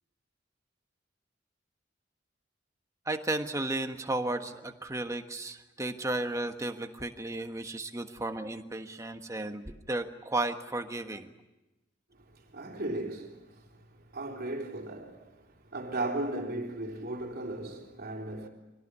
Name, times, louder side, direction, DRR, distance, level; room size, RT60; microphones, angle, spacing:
voice 1, 3.1-11.3, right 2 dB, 15° right, 1.4 m, -34 dB
voice 2, 12.5-13.4 14.1-15.3 15.7-18.5, right 2 dB, 55° right, 3.7 m, -36 dB
24.5 x 17.5 x 9.7 m
head